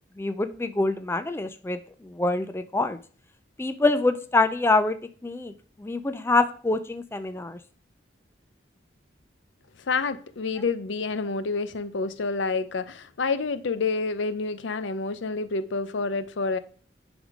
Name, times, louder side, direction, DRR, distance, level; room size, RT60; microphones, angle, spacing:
voice 1, 0.2-3.0 3.6-5.0 5.2-5.5 5.8-7.6, left 2 dB, 15° left, 0.3 m, -25 dB
voice 2, 9.8-16.6, left 4 dB, 80° left, 0.6 m, -28 dB
9.9 x 3.6 x 4.8 m
head